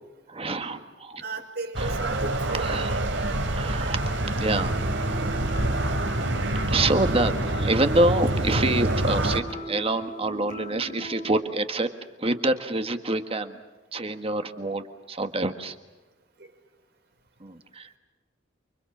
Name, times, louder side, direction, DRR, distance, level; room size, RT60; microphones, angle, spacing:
voice 1, 0.3-1.2 1.8-1.9 2.5-2.9 3.5-4.1 4.4-5.4 6.7-11.9 12.2-13.6 13.9-15.7 17.4-18.0, right 2 dB, 30° right, 7 dB, 1.6 m, -27 dB
voice 2, 1.2-3.0 16.4-16.5, right 3 dB, 60° right, 4 dB, 5.8 m, -35 dB
sound 1, 1.7-9.4, right 1 dB, 75° right, 3.1 m, -26 dB
sound 2, 1.9-11.3, right 1 dB, 45° left, 6.7 m, -41 dB
30.0 x 25.0 x 7.4 m, 1.1 s
head